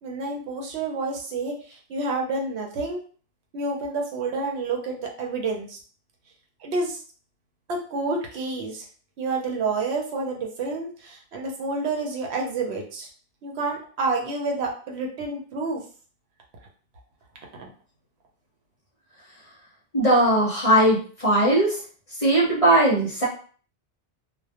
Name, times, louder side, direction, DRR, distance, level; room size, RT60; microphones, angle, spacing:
voice 1, 0.0-3.0 3.5-5.8 6.6-7.0 7.7-8.9 9.2-13.1 13.4-15.8 17.6-17.7, right 3 dB, 75° right, 0 dB, 0.9 m, -29 dB
voice 2, 19.9-21.8 22.2-23.3, right 1 dB, 40° left, -5 dB, 0.6 m, -19 dB
2.1 x 2.1 x 2.7 m, 0.42 s
omnidirectional pair, 1.1 m